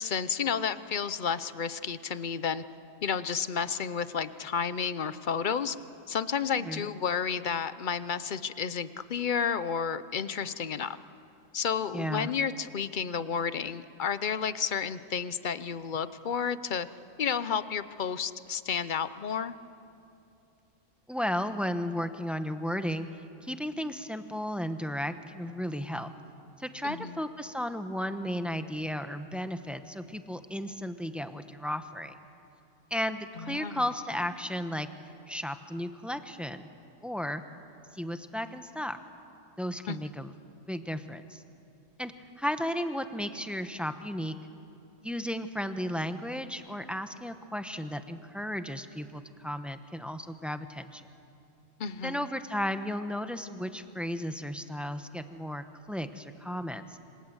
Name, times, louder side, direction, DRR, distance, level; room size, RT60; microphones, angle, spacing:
voice 1, 0.0-2.6 3.0-5.8 6.1-11.0 11.5-16.9 17.2-19.6 26.8-27.2 33.4-33.8 39.9-40.0 51.8-52.3, left 6 dB, 45° left, 14 dB, 0.8 m, -31 dB
voice 2, 11.9-12.3 21.1-23.1 23.4-26.1 26.6-32.1 32.9-34.9 35.3-36.7 37.0-37.4 37.9-39.0 39.6-40.3 40.7-41.4 42.0-44.4 45.0-51.0 52.0-56.8, equal, ahead, 8 dB, 0.9 m, -34 dB
27.0 x 26.0 x 8.0 m, 2.7 s
omnidirectional pair, 1.3 m